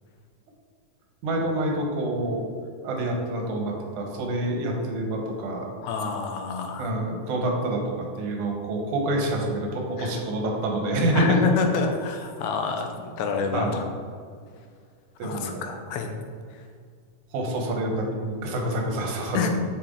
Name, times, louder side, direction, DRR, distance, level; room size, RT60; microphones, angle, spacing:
voice 1, 1.2-2.4 2.8-5.7 6.8-11.4 13.5-13.8 15.2-15.7 17.3-19.5, right 1 dB, 80° right, 1 dB, 2.5 m, -27 dB
voice 2, 5.8-6.9 10.0-10.1 11.1-13.8 15.2-16.1 16.5-16.6 19.3-19.5, left 5 dB, 85° left, 4 dB, 2.1 m, -27 dB
6.8 x 5.9 x 3.7 m, 2.1 s
omnidirectional pair, 3.5 m